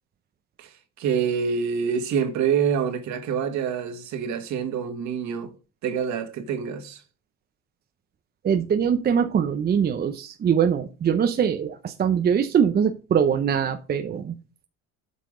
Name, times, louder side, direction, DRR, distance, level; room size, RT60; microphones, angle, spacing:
voice 1, 0.6-5.5 5.8-7.0, right 7 dB, 60° right, 1.8 m, -26 dB
voice 2, 8.4-14.3, right 7 dB, 30° right, 0.7 m, -22 dB
8.5 x 5.8 x 3.8 m
cardioid pair, 130°, 33 cm